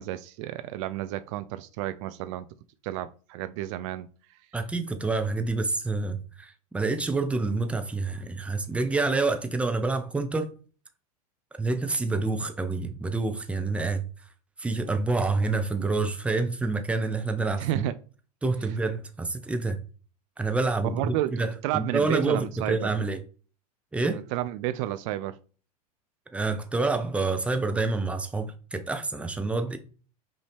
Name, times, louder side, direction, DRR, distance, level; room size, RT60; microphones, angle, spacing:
voice 1, 0.0-2.5 2.8-4.1 17.6-17.9 20.9-21.3 21.6-23.0 24.1-25.4, right 14 dB, 55° right, 0.4 m, -31 dB
voice 2, 4.5-10.5 11.6-14.1 14.6-17.8 18.4-19.8 20.4-23.2 23.9-24.2 26.3-29.8, right 3 dB, 5° right, 0.6 m, -27 dB
5.4 x 2.7 x 3.4 m
hypercardioid pair, 110°, 20 cm